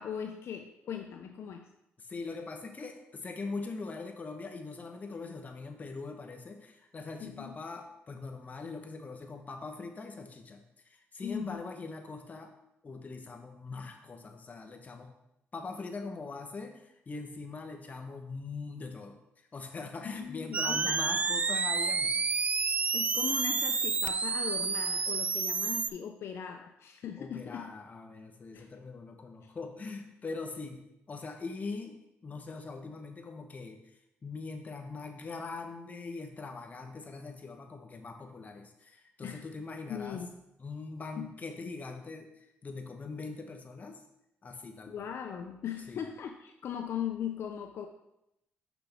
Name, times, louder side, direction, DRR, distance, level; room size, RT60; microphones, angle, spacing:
voice 1, 0.0-1.7 7.2-7.5 11.2-11.6 20.0-21.0 22.9-27.7 28.5-28.7 29.4-29.5 39.2-39.4 39.9-40.3 41.2-41.3 44.8-47.9, left 8 dB, 65° left, 5 dB, 0.5 m, -39 dB
voice 2, 2.0-12.5 12.8-15.1 15.5-19.2 19.5-22.2 27.2-32.0 32.2-33.8 34.2-40.2 40.6-44.0 44.4-45.1 45.9-46.0, left 3 dB, 35° left, 4 dB, 0.9 m, -42 dB
sound 1, 20.5-25.9, right 4 dB, 30° right, 0.3 m, -29 dB
6.0 x 5.8 x 3.5 m, 0.86 s
cardioid pair, 85°, 5 cm